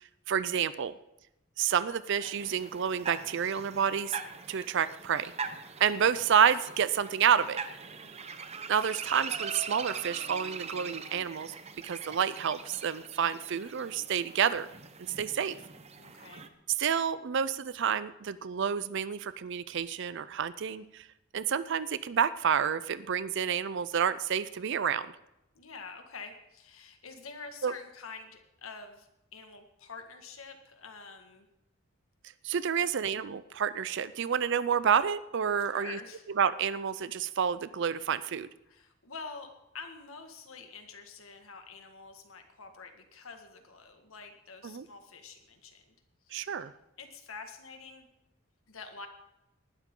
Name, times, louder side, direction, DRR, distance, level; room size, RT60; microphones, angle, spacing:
voice 1, 0.3-0.9 1.6-4.2 4.5-5.3 5.8-7.6 8.7-11.5 11.8-14.7 15.2-15.6 16.8-21.1 21.3-25.1 27.6-27.7 32.4-36.0 36.4-38.5 44.6-44.9 46.3-46.7, right 7 dB, 60° right, 15 dB, 0.5 m, -29 dB
sound 1, 2.2-16.5, right 5 dB, 30° right, 0.8 m, -42 dB
voice 2, 8.0-8.5 16.0-16.4 25.6-31.5 32.8-33.2 35.7-36.3 38.7-45.8 46.2-46.6 47.0-48.1 48.7-49.1, left 4 dB, 80° left, 6 dB, 1.8 m, -47 dB
19.0 x 12.0 x 3.8 m, 0.89 s
head